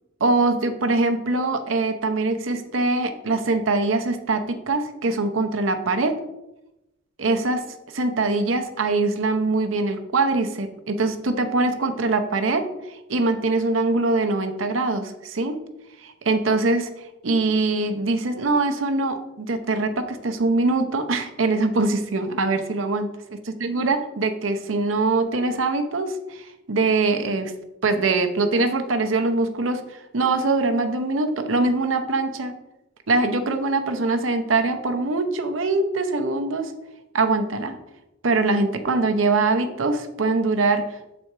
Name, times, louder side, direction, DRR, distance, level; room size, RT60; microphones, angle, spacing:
voice 1, 0.2-6.2 7.2-15.6 16.0-16.9 17.2-23.1 23.6-27.5 27.8-32.6 33.1-36.7 37.1-37.8 38.2-40.9, right 3 dB, 85° right, 7 dB, 0.7 m, -23 dB
6.6 x 4.2 x 4.6 m, 0.93 s
head